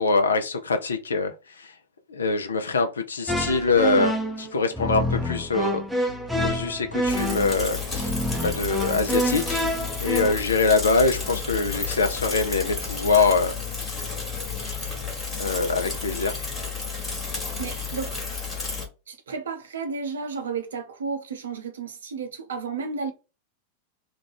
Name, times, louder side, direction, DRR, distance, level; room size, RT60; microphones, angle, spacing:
voice 1, 0.0-1.7 2.1-5.8 6.4-9.7 10.0-13.5 15.3-16.4, left 4 dB, 70° left, 0.4 m, -24 dB
sound 1, 3.3-10.3, equal, 5° right, 0.5 m, -27 dB
sound 2, 6.1-15.2, left 10 dB, 55° left, 0.9 m, -40 dB
Bicycle / Mechanisms, 7.1-18.9, left 4 dB, 15° left, 1.2 m, -32 dB
voice 2, 17.3-18.2 19.1-23.1, right 5 dB, 65° right, 0.6 m, -33 dB
2.4 x 2.2 x 3.3 m
figure-of-eight pair, 90°, 0 cm